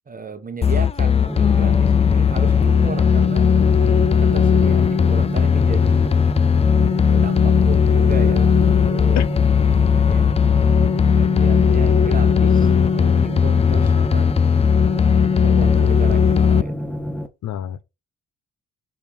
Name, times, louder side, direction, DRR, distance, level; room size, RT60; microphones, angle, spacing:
voice 1, 0.1-3.5 4.2-6.2 7.0-9.2 9.7-10.3 11.1-14.3 15.4-16.8, right 5 dB, 30° right, 1.0 m, -34 dB
sound 1, 0.6-16.6, left 7 dB, 20° left, 0.4 m, -17 dB
sound 2, 1.3-17.3, equal, 5° left, 1.2 m, -28 dB
voice 2, 9.2-9.5 13.7-13.9 17.4-17.8, left 10 dB, 65° left, 0.7 m, -29 dB
6.8 x 3.7 x 4.3 m
cardioid pair, 90°, 30 cm